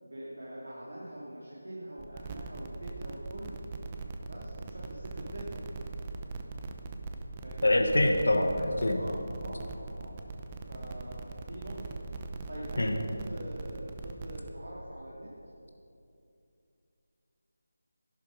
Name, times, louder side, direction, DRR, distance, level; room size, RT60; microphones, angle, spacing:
voice 1, 0.0-3.6 4.2-5.6 7.4-7.7 8.9-10.2 10.7-11.9 12.5-15.3, right 1 dB, 70° right, -7 dB, 3.0 m, -44 dB
sound 1, 2.0-14.5, right 3 dB, 25° right, 0.8 m, -41 dB
voice 2, 7.6-9.0 12.8-12.9, left 1 dB, 70° left, 4 dB, 1.3 m, -25 dB
11.5 x 11.5 x 5.2 m, 2.6 s
figure-of-eight pair, 160°, 0 cm